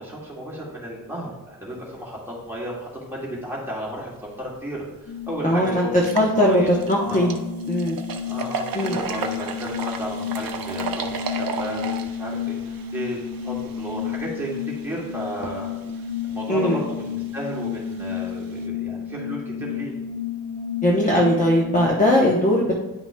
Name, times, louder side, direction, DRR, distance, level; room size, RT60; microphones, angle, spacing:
voice 1, 0.0-2.2 2.4-5.9 6.3-6.7 7.0-7.3 8.2-15.7 16.3-19.9, right 1 dB, 5° right, -5 dB, 1.8 m, -33 dB
sound 1, 4.6-4.7 5.2-5.3 5.9-18.7, right 5 dB, 85° right, 0.7 m, -35 dB
sound 2, 5.1-21.9, left 8 dB, 45° left, 1.6 m, -32 dB
voice 2, 5.4-7.4 7.7-8.0 8.7-9.0 16.5-16.8 20.8-22.8, equal, 25° left, -3 dB, 0.8 m, -19 dB
10.0 x 5.8 x 2.2 m, 1.1 s
wide cardioid pair, 170°, 34 cm